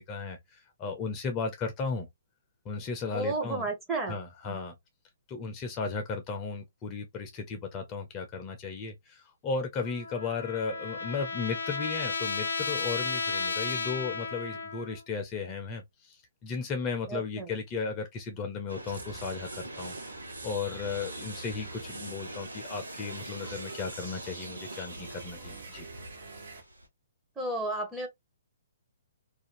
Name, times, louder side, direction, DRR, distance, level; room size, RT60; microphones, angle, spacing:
voice 1, 0.0-2.1 2.6-3.7 4.1-4.7 5.3-20.0 20.4-25.9, left 5 dB, 25° left, 0.6 m, -35 dB
voice 2, 3.1-4.1 4.5-4.6 17.1-17.5 27.4-28.1, right 2 dB, 10° right, 1.0 m, -32 dB
Trumpet, 9.8-15.0, left 4 dB, 75° left, 0.4 m, -33 dB
sound 1, 18.7-26.9, right 1 dB, 90° right, 0.7 m, -44 dB
sound 2, 18.9-26.6, right 3 dB, 65° right, 1.3 m, -46 dB
2.5 x 2.3 x 2.8 m
figure-of-eight pair, 125°, 0 cm